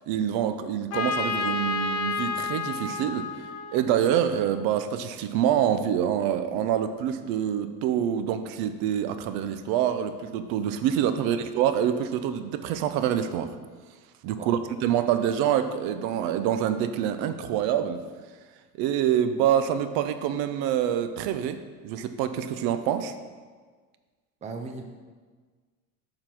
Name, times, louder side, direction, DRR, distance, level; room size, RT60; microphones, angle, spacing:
voice 1, 0.1-3.3 3.7-13.5 14.2-18.0 18.8-23.1, right 9 dB, 80° right, 10 dB, 0.6 m, -26 dB
Trumpet, 0.9-4.6, left 4 dB, 45° left, 0.5 m, -31 dB
voice 2, 24.4-24.8, right 3 dB, 20° right, 4 dB, 0.5 m, -38 dB
6.7 x 3.8 x 6.0 m, 1.5 s
cardioid pair, 160°, 35 cm